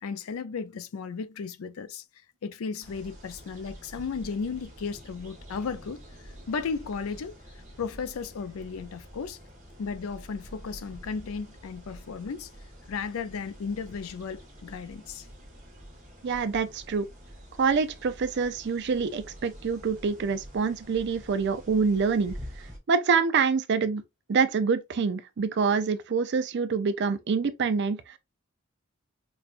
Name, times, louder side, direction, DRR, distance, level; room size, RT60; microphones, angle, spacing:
voice 1, 0.0-2.0 2.4-7.4 7.8-9.4 9.8-12.5 12.9-15.3, left 5 dB, 75° left, 0.4 m, -35 dB
sound 1, 2.8-22.8, equal, 35° right, 1.2 m, -47 dB
voice 2, 16.2-17.1 17.6-24.0 24.3-28.2, right 5 dB, 50° right, 0.4 m, -26 dB
5.0 x 2.3 x 2.4 m
head